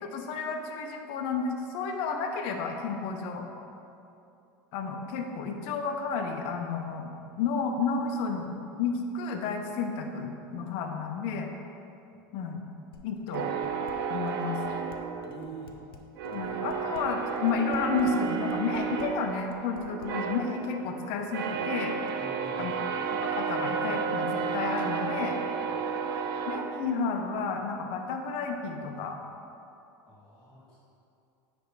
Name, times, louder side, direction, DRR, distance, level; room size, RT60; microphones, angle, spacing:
voice 1, 0.0-3.4 4.7-8.5 8.8-11.5 12.3-12.6 13.0-13.5 14.1-14.6 16.3-22.0 22.6-22.7 23.1-25.4 26.5-29.2, left 5 dB, 60° left, 3 dB, 0.9 m, -31 dB
Dishes pots and pans, 12.9-14.0 14.3-20.1, left 4 dB, 90° left, 0.6 m, -49 dB
sound 1, 13.3-15.8 16.2-27.4, right 6 dB, 75° right, 0.5 m, -32 dB
voice 2, 15.3-15.8 16.3-16.6 22.2-22.8 25.7-25.8 30.0-30.8, right 3 dB, 5° left, -9 dB, 1.4 m, -47 dB
9.4 x 3.5 x 4.8 m, 2.7 s
hypercardioid pair, 95°, 12 cm